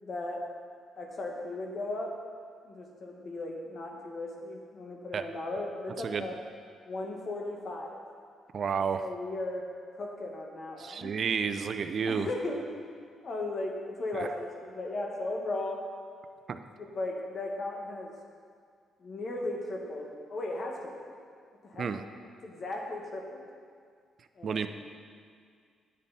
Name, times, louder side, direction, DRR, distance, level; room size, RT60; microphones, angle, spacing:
voice 1, 0.0-0.4 1.0-2.1 2.6-6.4 6.8-8.0 9.0-9.7 10.0-11.1 12.1-12.9 13.2-15.8 16.8-18.1 19.0-21.1 21.6-21.9 22.4-23.5 24.4-24.7, left 2 dB, 50° left, 0 dB, 1.7 m, -36 dB
voice 2, 8.5-9.0 10.8-12.3 14.1-14.3 16.5-16.6 21.8-22.0 24.4-24.7, right 6 dB, 50° right, 9 dB, 0.6 m, -31 dB
10.5 x 8.5 x 4.2 m, 2.1 s
cardioid pair, 90°, 0 cm